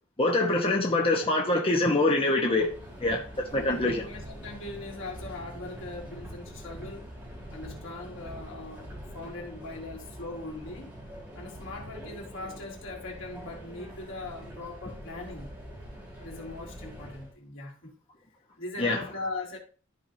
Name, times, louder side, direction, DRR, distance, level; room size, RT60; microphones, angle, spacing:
voice 1, 0.2-2.7 3.0-3.2 3.5-4.0 18.8-19.0, left 2 dB, 30° left, 1.1 m, -24 dB
Subway metro underground, 2.5-17.3, equal, 10° right, 3.5 m, -44 dB
voice 2, 3.5-7.1 7.5-8.9 9.1-10.9 11.3-15.5 16.2-17.9 18.6-19.6, left 2 dB, 80° left, 2.9 m, -40 dB
13.5 x 4.8 x 2.7 m
head